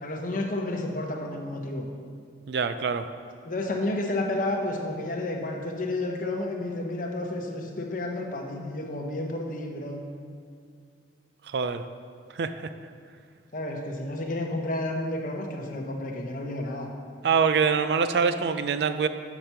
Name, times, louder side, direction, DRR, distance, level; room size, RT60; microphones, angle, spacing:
voice 1, 0.0-1.9 3.4-10.0 13.5-16.9, left 2 dB, 45° left, 2 dB, 0.8 m, -31 dB
voice 2, 2.5-3.1 11.5-11.8 12.3-12.7 17.2-19.1, right 6 dB, 65° right, 10 dB, 0.4 m, -24 dB
6.6 x 6.0 x 5.6 m, 2.2 s
head